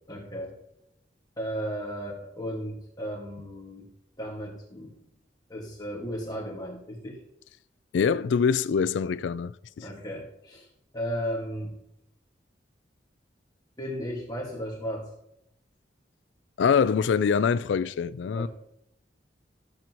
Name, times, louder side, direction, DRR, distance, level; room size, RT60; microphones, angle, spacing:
voice 1, 0.1-0.5 1.4-3.9 4.2-4.9 5.5-7.2 9.8-10.7 10.9-11.7 13.8-15.1 18.3-18.5, equal, 20° left, 1.7 m, -35 dB
voice 2, 7.9-9.9 16.6-18.5, left 6 dB, 80° left, 0.3 m, -24 dB
13.0 x 7.6 x 3.0 m
head